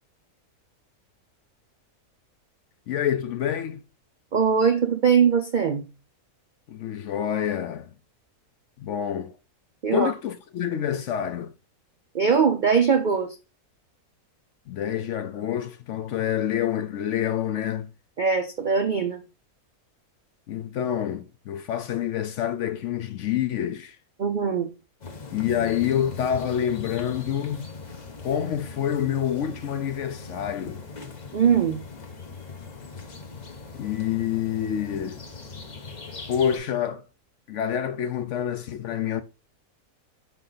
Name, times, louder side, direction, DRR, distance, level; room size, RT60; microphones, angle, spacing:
voice 1, 2.9-3.8 6.7-7.9 8.8-9.4 9.9-11.5 14.7-17.9 20.5-24.0 25.3-27.7 28.2-30.8 33.7-35.2 36.3-37.0 37.5-39.2, left 9 dB, 65° left, 0.7 m, -27 dB
voice 2, 4.3-5.9 9.8-10.1 12.1-13.4 18.2-19.2 24.2-24.7 31.3-31.8, right 6 dB, 65° right, 0.4 m, -21 dB
sound 1, 25.0-36.6, left 4 dB, 35° left, 1.0 m, -40 dB
5.6 x 4.5 x 3.9 m
omnidirectional pair, 1.6 m